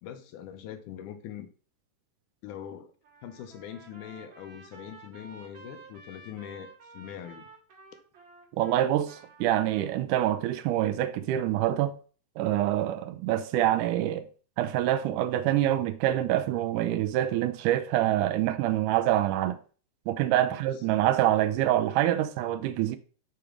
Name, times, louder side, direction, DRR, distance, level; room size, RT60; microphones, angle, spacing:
voice 1, 0.0-1.5 2.4-2.9 3.2-7.5 20.5-20.7, left 9 dB, 80° left, 2.2 m, -42 dB
Trumpet, 3.0-9.9, right 3 dB, 50° right, 1.7 m, -52 dB
voice 2, 8.5-12.0 12.4-14.3 14.6-19.6 20.1-23.0, right 13 dB, 80° right, 2.0 m, -26 dB
6.9 x 3.4 x 5.0 m
omnidirectional pair, 3.7 m